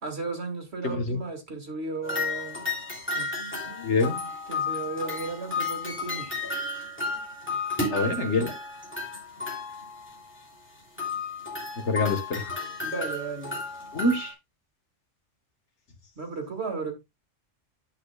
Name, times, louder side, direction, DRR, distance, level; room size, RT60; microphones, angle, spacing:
voice 1, 0.0-2.7 3.2-3.4 3.6-6.4 7.0-7.2 7.5-7.6 12.8-13.6 16.2-16.9, right 4 dB, 55° right, 2.5 m, -35 dB
voice 2, 0.8-1.2 3.8-4.2 7.9-8.5 11.8-12.5 13.9-14.3, left 3 dB, 65° left, 1.8 m, -25 dB
sound 1, 2.0-10.4 11.0-14.3, left 3 dB, 10° left, 2.9 m, -33 dB
10.5 x 7.7 x 2.3 m
omnidirectional pair, 1.3 m